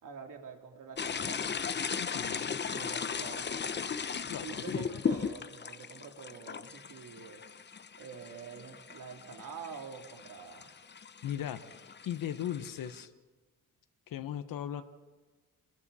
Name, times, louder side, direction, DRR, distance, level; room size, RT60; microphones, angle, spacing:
voice 1, 0.0-1.4 2.6-3.6 4.4-7.4 8.0-10.8, right 6 dB, 70° right, 2 dB, 3.3 m, -47 dB
sound 1, 1.0-13.0, left 6 dB, 30° left, 0.8 m, -37 dB
voice 2, 2.0-2.5 4.3-4.9 11.2-13.1 14.1-14.8, left 10 dB, 85° left, 9 dB, 1.1 m, -38 dB
29.5 x 21.0 x 4.2 m, 1.3 s
cardioid pair, 95°, 33 cm